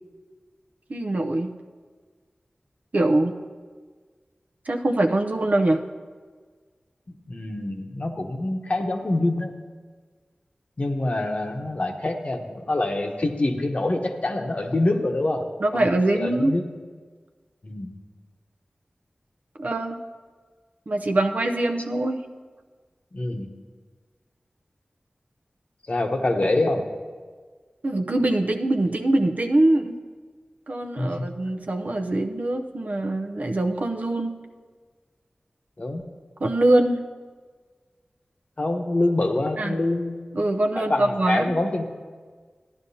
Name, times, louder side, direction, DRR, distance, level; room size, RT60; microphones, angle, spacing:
voice 1, 0.9-1.5 2.9-3.3 4.7-5.8 15.6-16.5 19.6-20.0 20.9-22.2 27.8-29.9 30.7-34.3 36.4-37.0 39.6-39.8 40.3-41.6, right 1 dB, 60° right, 4 dB, 0.7 m, -23 dB
voice 2, 7.3-9.5 10.8-15.4 15.7-16.6 17.6-17.9 23.1-23.5 25.9-26.8 31.0-31.3 35.8-36.0 38.6-40.5 40.8-41.9, left 2 dB, 50° left, 4 dB, 1.0 m, -25 dB
14.5 x 10.5 x 2.8 m, 1.5 s
wide cardioid pair, 50°, 3 cm